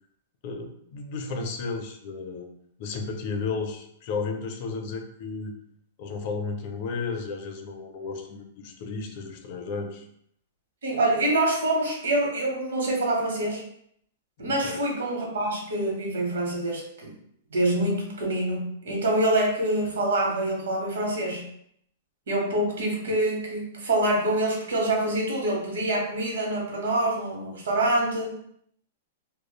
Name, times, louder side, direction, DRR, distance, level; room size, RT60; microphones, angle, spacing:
voice 1, 0.4-2.5 2.8-5.6 6.0-10.1 14.6-14.8 19.8-19.9 23.1-23.2, left 4 dB, 50° left, 5 dB, 0.5 m, -33 dB
voice 2, 10.8-13.6 14.4-17.1 17.5-21.4 22.3-28.3, right 1 dB, 80° right, 0 dB, 0.8 m, -26 dB
3.0 x 2.0 x 2.2 m, 0.70 s
hypercardioid pair, 135°, 0 cm